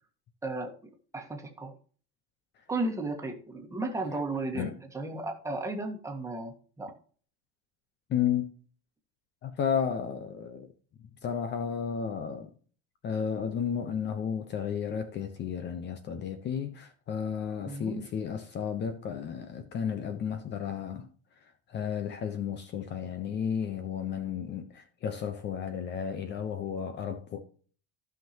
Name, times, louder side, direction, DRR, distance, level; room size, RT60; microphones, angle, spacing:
voice 1, 0.4-1.7 2.7-6.9 17.6-18.1, right 2 dB, 10° right, 1.7 m, -35 dB
voice 2, 8.1-8.5 9.4-10.7 11.2-12.5 13.0-21.1 21.7-27.4, left 7 dB, 35° left, 0.9 m, -33 dB
15.0 x 5.9 x 2.9 m
cardioid pair, 145°, 30 cm